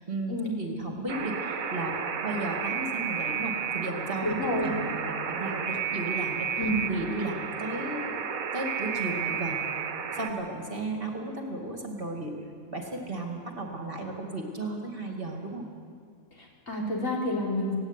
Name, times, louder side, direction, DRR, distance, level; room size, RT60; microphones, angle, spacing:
voice 1, 0.0-1.9 2.2-6.5 6.9-8.2 8.5-9.6 10.1-12.3 12.7-15.7, right 2 dB, 40° right, 1 dB, 2.7 m, -34 dB
Alarm, 1.1-10.3, right 7 dB, 75° right, 1.6 m, -32 dB
voice 2, 4.2-4.7 6.6-6.8 16.4-17.7, equal, 65° left, -3 dB, 4.2 m, -29 dB
17.5 x 16.5 x 9.9 m, 2.1 s
omnidirectional pair, 1.4 m